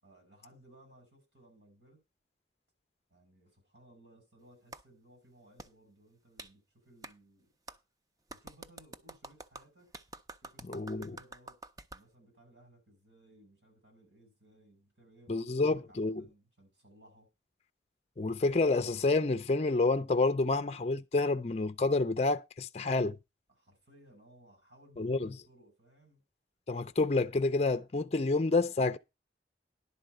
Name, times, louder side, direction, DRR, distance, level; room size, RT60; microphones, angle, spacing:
voice 1, 0.0-2.0 3.1-7.5 8.3-9.9 10.4-11.6 11.9-17.3 23.5-26.2, right 1 dB, 85° right, 5.9 m, -61 dB
Clapping, 4.7-4.8 5.6-5.7 6.4-6.5 7.0-7.1 7.7-7.8 8.3-12.0, right 2 dB, 20° right, 0.5 m, -47 dB
voice 2, 10.6-11.1 15.3-16.2 18.2-23.2 25.0-25.3 26.7-29.0, left 3 dB, 35° left, 0.4 m, -29 dB
11.0 x 4.6 x 7.7 m
head